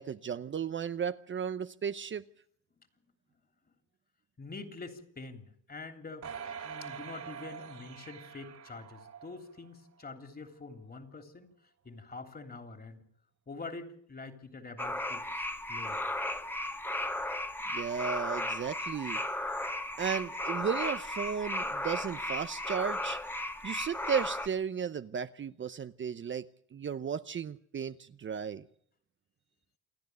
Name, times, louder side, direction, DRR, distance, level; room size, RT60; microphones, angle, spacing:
voice 1, 0.0-2.2 17.7-19.2 20.0-23.2 23.6-28.7, right 7 dB, 40° right, 0.8 m, -35 dB
voice 2, 4.4-11.5 11.8-13.0 13.5-16.0, left 3 dB, 30° left, 3.2 m, -46 dB
sound 1, 6.2-9.7 10.1-10.2, right 7 dB, 65° right, 3.3 m, -44 dB
sound 2, 14.8-24.5, left 1 dB, 5° left, 1.5 m, -35 dB
28.0 x 10.5 x 9.5 m
cardioid pair, 90°, 30 cm